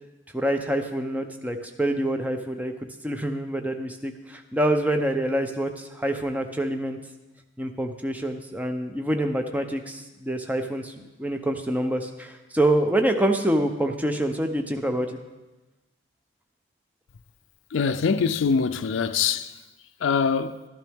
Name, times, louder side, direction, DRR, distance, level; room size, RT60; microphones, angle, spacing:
voice 1, 0.3-2.7 3.0-7.0 7.6-10.9 11.2-15.2, right 1 dB, 10° right, 0.6 m, -26 dB
voice 2, 17.7-19.5 20.0-20.6, left 6 dB, 70° left, 0.4 m, -23 dB
12.5 x 12.0 x 3.5 m
head